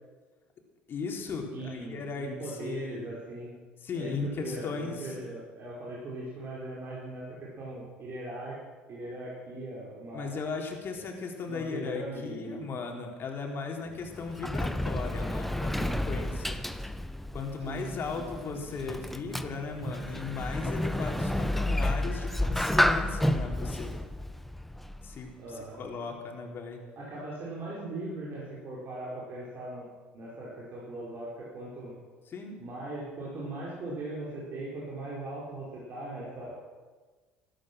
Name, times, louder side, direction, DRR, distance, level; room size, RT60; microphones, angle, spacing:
voice 1, 0.9-3.1 3.8-5.2 10.1-16.6 17.3-23.9 25.0-26.8 32.3-32.5, left 4 dB, 45° left, 2 dB, 3.7 m, -37 dB
voice 2, 1.5-3.5 3.9-8.6 8.9-10.3 11.5-12.7 17.7-18.3 25.4-25.8 27.0-29.9 30.1-31.9 32.6-36.6, right 2 dB, 45° right, -6 dB, 5.1 m, -39 dB
Sliding door, 13.9-25.3, left 1 dB, 5° left, 1.0 m, -31 dB
14.5 x 14.0 x 6.4 m, 1.4 s
hypercardioid pair, 65°, 5 cm